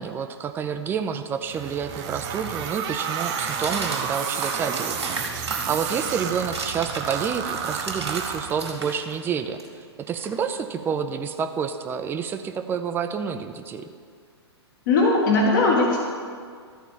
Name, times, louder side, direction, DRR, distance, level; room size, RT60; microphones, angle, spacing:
voice 1, 0.0-9.6 10.1-13.9, right 7 dB, 15° right, 8 dB, 0.5 m, -29 dB
sound 1, 0.9-8.3 8.6-10.8, right 3 dB, 75° right, 2.1 m, -36 dB
sound 2, 1.5-9.0, right 7 dB, 30° right, 0.9 m, -31 dB
voice 2, 14.9-16.0, left 3 dB, 45° left, -1 dB, 1.6 m, -19 dB
13.5 x 4.5 x 7.1 m, 2.1 s
figure-of-eight pair, 110°, 14 cm